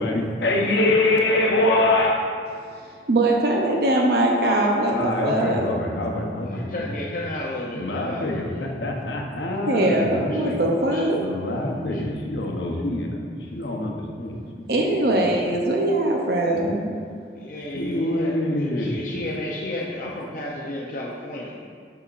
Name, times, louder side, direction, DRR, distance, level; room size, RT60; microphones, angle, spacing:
voice 1, 0.0-2.4 4.9-7.0 7.7-10.6 11.2-13.2 13.5-14.7 15.1-15.3 16.5-16.6 17.5-19.4, left 2 dB, 80° left, 0 dB, 0.8 m, -25 dB
voice 2, 3.1-5.6 9.7-11.2 14.7-17.0, right 1 dB, 60° right, 0 dB, 0.6 m, -21 dB
voice 3, 6.5-8.7 10.3-10.5 10.9-11.0 11.9-12.0 17.4-21.7, left 1 dB, 50° left, -3 dB, 0.6 m, -32 dB
6.8 x 5.8 x 2.5 m, 2.1 s
head